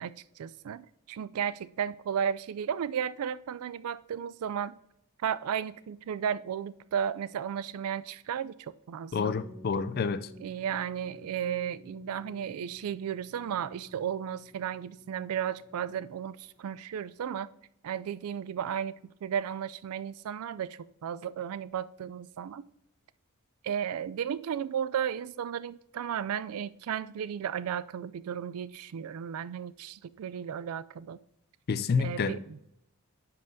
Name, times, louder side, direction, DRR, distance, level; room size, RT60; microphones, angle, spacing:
voice 1, 0.0-4.8 5.2-9.4 10.4-17.5 17.8-18.9 19.2-22.6 23.6-31.2 32.0-32.6, right 8 dB, 80° right, 0.3 m, -34 dB
voice 2, 9.1-10.3 31.7-32.4, left 5 dB, 45° left, 0.4 m, -28 dB
sound 1, 9.1-16.6, equal, 55° right, 2.3 m, -51 dB
10.0 x 5.7 x 2.7 m
head